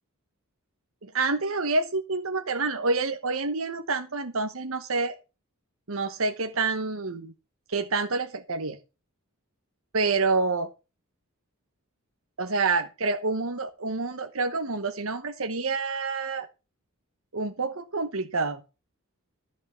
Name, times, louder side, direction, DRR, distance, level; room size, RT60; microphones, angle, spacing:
voice 1, 1.0-5.1 5.9-7.3 7.7-8.8 9.9-10.7 12.4-16.5 17.3-18.6, right 3 dB, 70° right, 5 dB, 1.2 m, -28 dB
13.5 x 5.6 x 6.8 m, 0.30 s
head